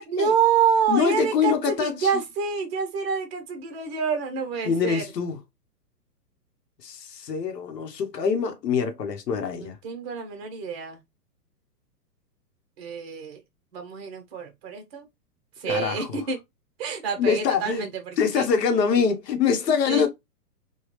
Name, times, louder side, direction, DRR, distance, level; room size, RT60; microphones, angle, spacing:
voice 1, 0.0-5.0 9.5-11.0 12.8-13.4 13.7-15.1 15.6-16.4 16.8-18.5 19.9-20.1, right 6 dB, 40° right, 1.1 m, -27 dB
voice 2, 0.9-2.1 4.6-5.4 6.8-9.8 15.7-16.2 17.2-17.8 18.2-20.1, left 6 dB, 85° left, 1.1 m, -24 dB
3.3 x 2.3 x 3.1 m
hypercardioid pair, 155°, 48 cm